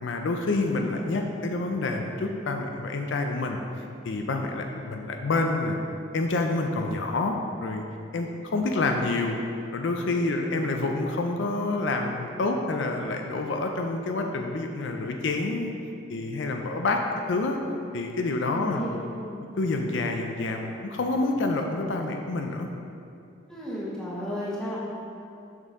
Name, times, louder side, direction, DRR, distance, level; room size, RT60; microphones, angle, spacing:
voice 1, 0.0-5.8 6.1-7.4 7.6-7.8 8.1-9.4 9.7-15.7 16.1-17.0 17.3-17.6 17.9-19.0 19.6-22.7, left 2 dB, 65° left, 3 dB, 0.5 m, -28 dB
voice 2, 10.1-10.8 18.5-19.3 23.5-24.8, equal, 5° left, -7 dB, 1.2 m, -34 dB
6.4 x 5.4 x 3.6 m, 2.7 s
head